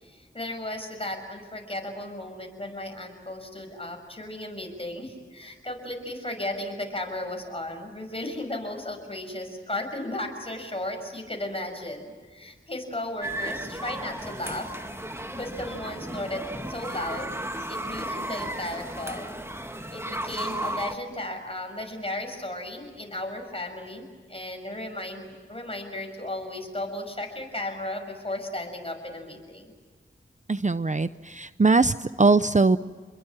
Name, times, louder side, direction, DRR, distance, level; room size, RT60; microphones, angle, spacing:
voice 1, 0.0-14.7 15.3-16.4 16.7-17.3 17.7-19.3 19.9-29.7, left 1 dB, 30° left, 3 dB, 6.5 m, -35 dB
sound 1, 13.2-21.0, right 1 dB, 10° right, 1.9 m, -34 dB
voice 2, 30.5-32.8, right 3 dB, 35° right, 13 dB, 0.6 m, -21 dB
29.0 x 22.0 x 7.6 m, 1.5 s
wide cardioid pair, 60°, 20 cm